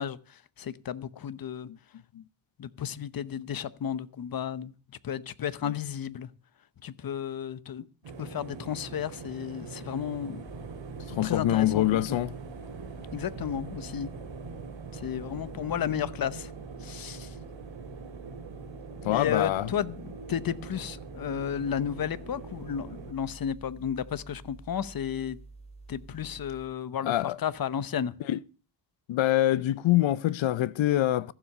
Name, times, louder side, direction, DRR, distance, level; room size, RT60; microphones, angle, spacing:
voice 1, 0.0-1.7 2.6-4.7 5.0-6.3 6.8-7.9 8.2-10.4 11.2-12.2 13.1-14.1 14.9-16.5 16.8-17.4 19.1-25.4 25.9-28.2, left 8 dB, 50° left, 0.9 m, -33 dB
sound 1, 8.0-23.1, right 4 dB, 80° right, 2.5 m, -43 dB
sound 2, 10.5-26.7, right 3 dB, 15° left, 3.1 m, -49 dB
voice 2, 11.1-12.3 19.0-19.7 27.0-27.4 28.3-28.4 29.1-31.3, left 14 dB, 85° left, 0.8 m, -25 dB
14.5 x 7.5 x 6.5 m
cardioid pair, 110°, 44 cm